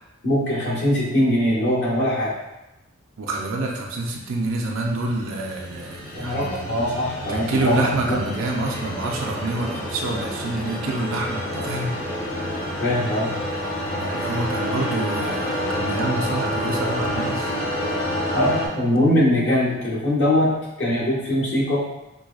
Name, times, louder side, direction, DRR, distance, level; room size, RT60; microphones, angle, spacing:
voice 1, 0.2-2.3 6.1-7.8 12.8-13.3 18.3-20.5 20.8-21.8, left 1 dB, 55° left, -7 dB, 1.4 m, -21 dB
voice 2, 3.2-6.5 7.3-11.9 12.6-12.9 14.0-17.5, right 2 dB, 70° right, 0 dB, 0.5 m, -27 dB
sound 1, 4.6-18.7, equal, 40° left, 1.0 m, -28 dB
6.1 x 2.3 x 2.3 m, 0.95 s
head